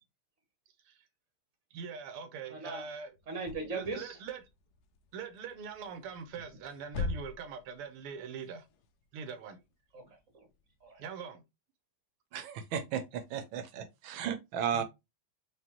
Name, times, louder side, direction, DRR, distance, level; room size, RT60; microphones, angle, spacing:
voice 1, 1.7-3.1 3.7-4.4 5.1-8.7 9.1-9.6 11.0-11.4, right 6 dB, 85° right, 1.7 m, -42 dB
voice 2, 2.5-2.8 3.3-4.2 9.9-10.5 10.8-11.0, right 3 dB, 45° right, 1.1 m, -39 dB
sound 1, 3.1-11.2, left 4 dB, 85° left, 0.8 m, -43 dB
voice 3, 12.3-14.8, right 8 dB, 70° right, 1.4 m, -35 dB
5.0 x 2.7 x 2.9 m
omnidirectional pair, 2.4 m